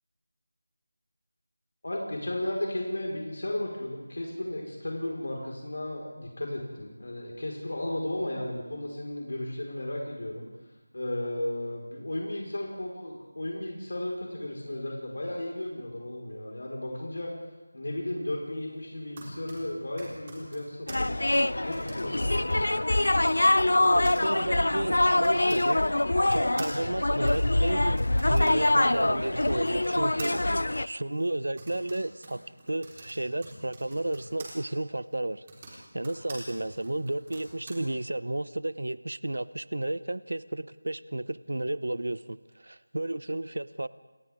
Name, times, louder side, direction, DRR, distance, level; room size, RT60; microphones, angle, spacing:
voice 1, 1.8-21.2 21.6-22.7, left 1 dB, 60° left, -1 dB, 4.9 m, -34 dB
Typing, 18.9-25.7 26.3-34.5 35.3-37.7, right 2 dB, 20° right, 4.4 m, -47 dB
sound 1, 20.9-30.9, left 1 dB, 80° left, 0.7 m, -24 dB
voice 2, 23.9-25.9 26.3-28.0 28.2-43.9, right 1 dB, 85° right, 16 dB, 0.8 m, -32 dB
29.5 x 26.5 x 3.7 m, 1.2 s
figure-of-eight pair, 180°, 0 cm